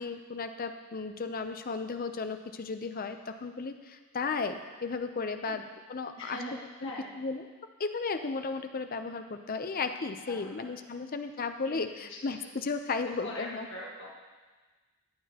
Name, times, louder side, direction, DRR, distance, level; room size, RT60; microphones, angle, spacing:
voice 1, 0.0-7.5 7.8-13.7, left 4 dB, 40° left, 7 dB, 0.6 m, -35 dB
voice 2, 6.2-7.1 10.2-10.7 11.1-11.2 11.6-12.5 13.2-14.2, left 1 dB, 55° left, -3 dB, 1.5 m, -43 dB
15.0 x 9.4 x 2.9 m, 1.3 s
head